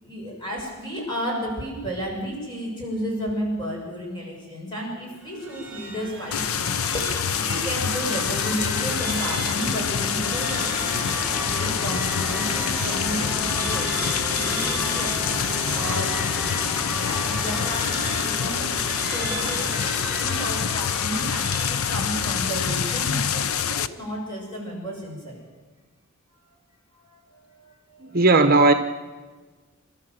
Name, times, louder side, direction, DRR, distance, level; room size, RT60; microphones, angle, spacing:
voice 1, 0.0-10.9 11.4-13.9 14.4-15.3 15.7-16.1 17.0-25.4 27.0-28.2, equal, 20° left, 7.1 m, -33 dB
sound 1, 5.2-23.4, equal, 5° right, 5.8 m, -33 dB
sound 2, 6.3-23.9, left 8 dB, 75° left, 0.7 m, -26 dB
voice 2, 28.0-28.7, right 3 dB, 45° right, 1.0 m, -16 dB
28.0 x 13.0 x 7.7 m
head